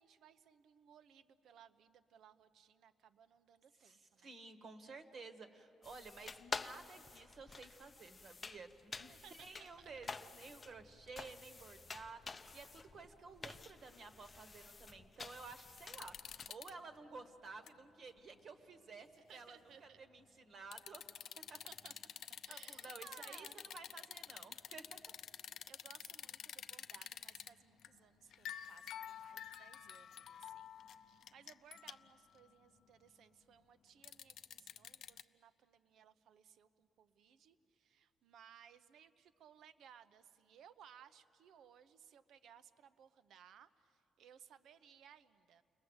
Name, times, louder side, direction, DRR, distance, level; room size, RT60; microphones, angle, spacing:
voice 1, 0.0-4.3 9.0-9.9 10.2-10.3 19.3-20.0 21.5-21.9 22.3-23.6 25.3-45.6, right 8 dB, 65° right, 12 dB, 0.9 m, -62 dB
voice 2, 3.8-16.2 16.5-21.1 21.4-21.6 22.5-23.5 23.7-25.0, right 4 dB, 45° right, 8 dB, 1.4 m, -53 dB
sound 1, 5.8-16.5, left 4 dB, 25° left, 0.6 m, -50 dB
sound 2, 15.8-16.7 17.3-17.7 18.2-18.3 20.7-27.5 27.8-28.0 28.3-32.1 34.0-35.2, left 9 dB, 65° left, 0.6 m, -49 dB
29.5 x 21.5 x 8.1 m, 2.8 s
cardioid pair, 140°, 0 cm